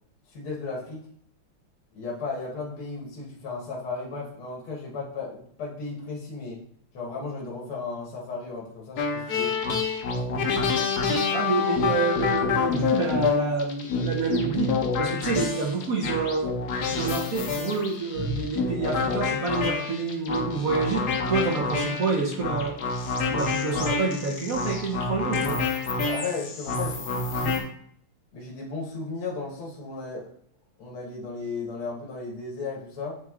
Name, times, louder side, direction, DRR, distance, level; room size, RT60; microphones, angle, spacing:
voice 1, 0.3-1.1 1.9-6.6 6.9-9.6 10.2-10.5 25.9-27.6 28.3-30.3 30.8-33.2, left 4 dB, 80° left, -3 dB, 2.3 m, -35 dB
sound 1, 9.0-27.6, left 4 dB, 60° left, 1.2 m, -27 dB
voice 2, 11.3-16.5 16.9-22.8 23.3-25.6, right 4 dB, 55° right, -1 dB, 1.1 m, -28 dB
8.9 x 3.1 x 3.6 m, 0.63 s
omnidirectional pair, 2.3 m